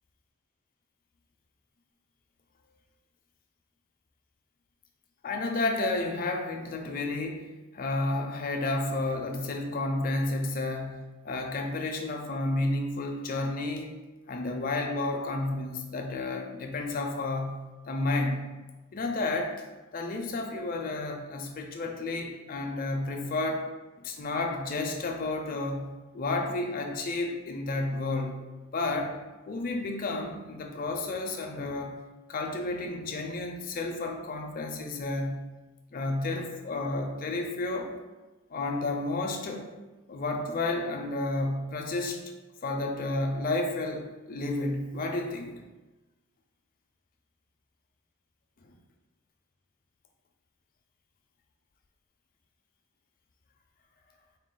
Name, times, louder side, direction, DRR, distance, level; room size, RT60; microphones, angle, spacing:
voice 1, 5.2-14.0 14.3-18.5 18.9-19.6 19.9-23.7 24.0-28.4 28.7-29.2 29.5-32.0 32.3-35.4 35.9-37.9 38.5-39.7 40.1-42.2 42.6-45.5 48.6-48.7, left 2 dB, 40° left, 3 dB, 0.4 m, -31 dB
4.0 x 2.3 x 3.7 m, 1.2 s
head